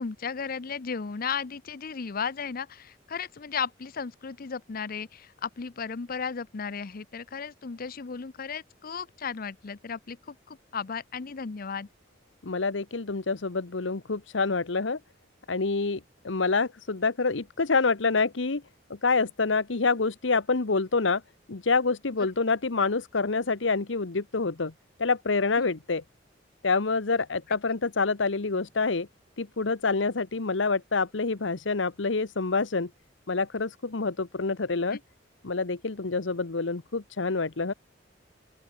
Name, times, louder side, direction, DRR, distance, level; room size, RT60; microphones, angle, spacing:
voice 1, 0.0-11.9 25.6-25.7, left 6 dB, 50° left, 0.6 m, -35 dB
voice 2, 12.4-15.0 15.5-18.6 18.9-21.2 21.5-24.7 25.0-26.0 26.6-29.1 29.4-32.9 33.3-35.0 35.4-37.7, left 4 dB, 80° left, 1.1 m, -27 dB
open air
head